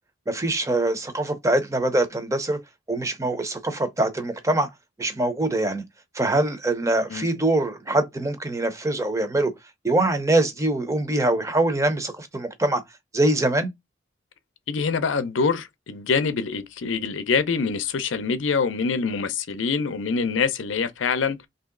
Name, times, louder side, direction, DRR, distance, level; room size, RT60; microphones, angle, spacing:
voice 1, 0.3-2.6 2.9-4.7 5.0-5.8 6.2-9.5 9.8-12.8 13.1-13.7, right 2 dB, 15° right, 0.6 m, -23 dB
voice 2, 14.7-21.5, left 5 dB, 75° left, 0.5 m, -25 dB
3.0 x 2.7 x 3.6 m
head